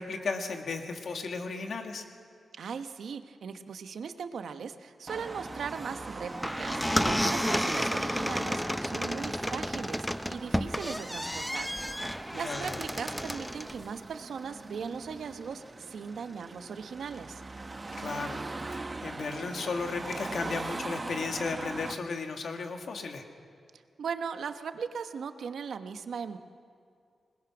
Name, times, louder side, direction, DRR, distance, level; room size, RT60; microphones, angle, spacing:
voice 1, 0.0-2.0 12.3-12.8 18.0-23.3, left 4 dB, 75° left, 4 dB, 1.9 m, -35 dB
voice 2, 2.5-11.7 12.1-17.4 23.7-26.4, right 6 dB, 85° right, 8 dB, 1.0 m, -39 dB
Car passing by / Traffic noise roadway noise / Engine, 5.1-21.9, right 2 dB, 35° right, 1.0 m, -41 dB
sound 1, 6.3-13.8, equal, 5° left, 0.7 m, -31 dB
21.0 x 20.5 x 6.2 m, 2.3 s
cardioid pair, 70°, 0 cm